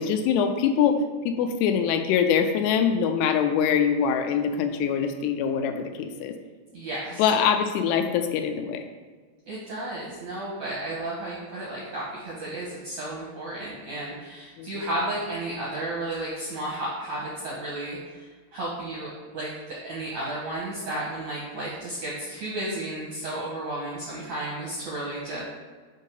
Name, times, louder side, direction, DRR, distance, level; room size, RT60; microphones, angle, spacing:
voice 1, 0.0-6.4 7.2-8.8 14.6-14.9, left 7 dB, 85° left, 6 dB, 2.7 m, -24 dB
voice 2, 6.7-7.2 9.5-18.2 18.5-25.4, right 1 dB, 70° right, -7 dB, 1.7 m, -33 dB
7.3 x 2.7 x 5.4 m, 1.5 s
omnidirectional pair, 4.8 m